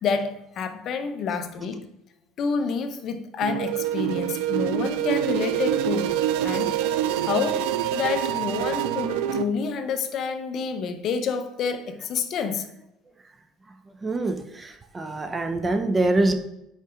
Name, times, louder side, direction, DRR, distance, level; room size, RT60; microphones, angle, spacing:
voice 1, 0.0-1.8 2.4-6.1 6.4-6.8 7.2-7.6 7.9-12.7, left 5 dB, 50° left, 8 dB, 0.7 m, -28 dB
sound 1, 3.4-9.4, right 11 dB, 85° right, 0.4 m, -26 dB
voice 2, 14.0-16.3, right 2 dB, 20° right, 9 dB, 0.6 m, -24 dB
5.4 x 4.9 x 5.0 m, 0.85 s
cardioid pair, 120°, 0 cm